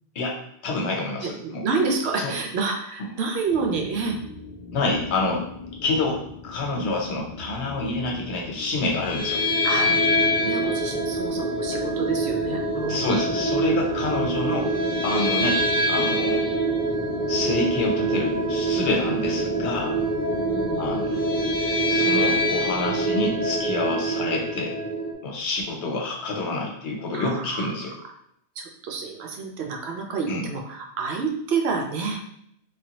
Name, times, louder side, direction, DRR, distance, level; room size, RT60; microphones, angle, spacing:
voice 1, 0.6-1.6 2.2-2.3 4.7-5.5 5.8-9.4 9.7-9.9 12.9-14.7 15.0-16.4 17.3-19.9 20.8-21.3 21.9-24.7 25.2-27.9 30.3-30.4, left 2 dB, 85° left, 0 dB, 1.0 m, -27 dB
voice 2, 1.2-4.2 9.6-9.9 10.4-13.1 14.2-14.7 16.3-16.5 19.2-19.4 20.3-20.8 27.1-27.7 28.6-32.2, right 4 dB, 75° right, 2 dB, 0.8 m, -29 dB
sound 1, 3.5-22.4, left 3 dB, 50° left, 0.7 m, -39 dB
sound 2, 9.0-25.1, right 1 dB, 20° left, 0.9 m, -25 dB
3.2 x 2.2 x 2.9 m, 0.72 s
omnidirectional pair, 1.1 m